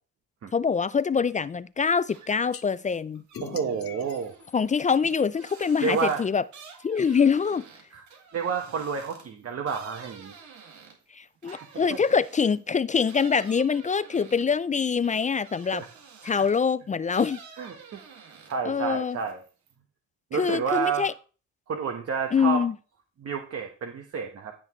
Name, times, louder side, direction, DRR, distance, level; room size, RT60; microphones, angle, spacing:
voice 1, 0.5-3.2 4.5-6.4 6.8-7.6 11.1-15.8 16.2-17.4 18.7-19.2 20.3-21.1 22.3-22.7, left 6 dB, 25° left, 0.4 m, -24 dB
sound 1, 2.0-2.6 2.9-12.6 13.0-16.7 17.1-18.8 19.1-19.7, right 6 dB, 70° right, 2.1 m, -50 dB
sound 2, 2.5-2.6 3.3-5.5, left 8 dB, 50° left, 1.0 m, -43 dB
voice 2, 3.4-4.3 5.8-6.2 7.9-8.0 8.3-10.3 11.4-12.0 15.7-15.8 16.2-16.4 17.6-18.0 18.4-19.4 20.3-21.1 21.7-22.6 23.2-24.5, right 6 dB, 55° right, 1.3 m, -30 dB
15.0 x 6.2 x 3.1 m
cardioid pair, 90°, 30 cm